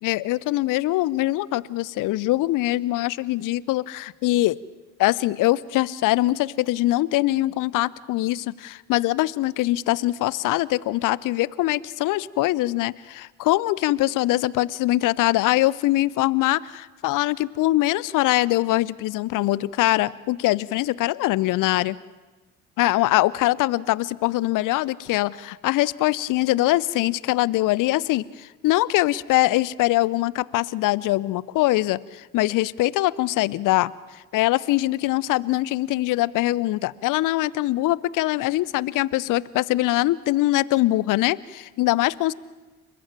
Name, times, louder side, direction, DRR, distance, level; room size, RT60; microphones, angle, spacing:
voice 1, 0.0-4.6 5.0-22.0 22.8-33.9 34.3-42.3, left 17 dB, 55° left, 22 dB, 0.7 m, -23 dB
29.0 x 14.5 x 7.4 m, 1.2 s
figure-of-eight pair, 45°, 39 cm